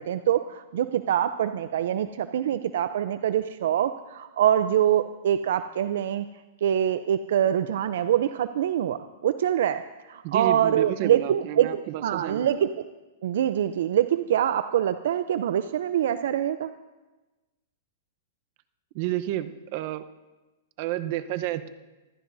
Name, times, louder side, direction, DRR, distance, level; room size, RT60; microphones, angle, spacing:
voice 1, 0.0-6.3 6.6-9.8 10.1-12.7 13.2-16.7, right 10 dB, 70° right, 11 dB, 0.6 m, -24 dB
voice 2, 10.2-12.5 18.9-20.0 20.8-21.7, right 13 dB, 50° right, 10 dB, 0.9 m, -30 dB
25.0 x 15.0 x 2.7 m, 1.1 s
hypercardioid pair, 140°, 0 cm